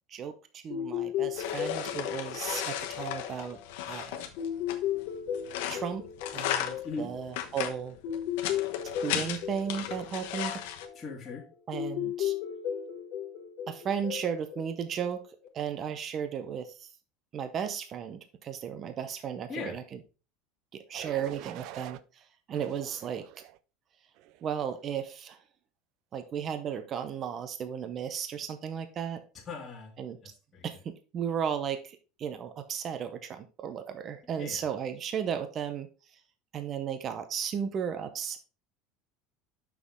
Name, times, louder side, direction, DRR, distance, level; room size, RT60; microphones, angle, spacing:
voice 1, 0.1-3.6 3.9-4.2 5.7-6.0 6.3-8.0 9.0-10.5 11.7-12.3 13.7-15.2 15.5-16.9 17.3-20.0 20.7-23.2 24.4-25.4 26.1-29.2 30.0-30.2 30.6-35.9 36.5-38.4, right 8 dB, 35° right, 8 dB, 0.7 m, -35 dB
sound 1, 0.7-15.5, left 10 dB, 55° left, 1.3 m, -36 dB
sound 2, 1.3-10.9, left 11 dB, 80° left, 1.0 m, -36 dB
voice 2, 11.0-11.4 19.5-19.8 29.5-29.9 30.2-30.7 34.4-34.6, left 4 dB, 20° left, -4 dB, 1.9 m, -39 dB
sound 3, 20.9-22.0 22.5-23.6 24.2-24.5, right 13 dB, 60° right, 0.4 m, -46 dB
6.1 x 5.9 x 3.6 m, 0.34 s
supercardioid pair, 140°, 0 cm